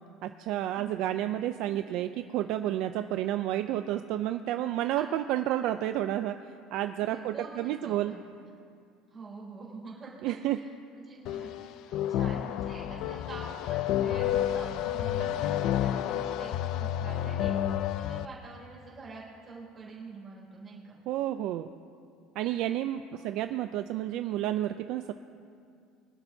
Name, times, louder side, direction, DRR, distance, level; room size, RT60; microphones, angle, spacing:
voice 1, 0.2-6.4 6.7-8.1 10.2-10.6 21.1-21.7 22.4-25.1, right 13 dB, 50° right, 9 dB, 0.3 m, -30 dB
voice 2, 7.0-8.3 9.1-21.0 23.1-23.3, right 3 dB, 15° right, -6 dB, 3.4 m, -46 dB
sound 1, 11.3-18.3, left 11 dB, 45° left, 0.4 m, -30 dB
23.5 x 11.5 x 2.7 m, 2.4 s
cardioid pair, 180°, 0 cm